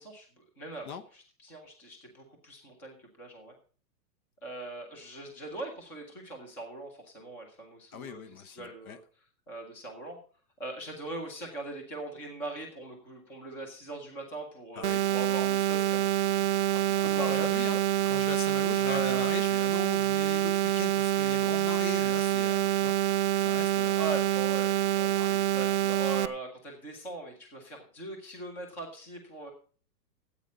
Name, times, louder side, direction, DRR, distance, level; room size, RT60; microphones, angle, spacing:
voice 1, 0.0-3.5 4.4-9.0 9.5-10.2 10.6-16.0 16.7-17.8 18.8-19.3 24.0-29.5, right 2 dB, 5° left, 0.5 m, -40 dB
voice 2, 7.9-9.0 14.8-15.0 16.9-17.8 18.0-22.9 23.4-24.2, left 7 dB, 55° left, 1.1 m, -40 dB
sound 1, 14.8-26.3, right 13 dB, 45° right, 0.6 m, -26 dB
13.5 x 8.4 x 5.0 m
hypercardioid pair, 165°, 50 cm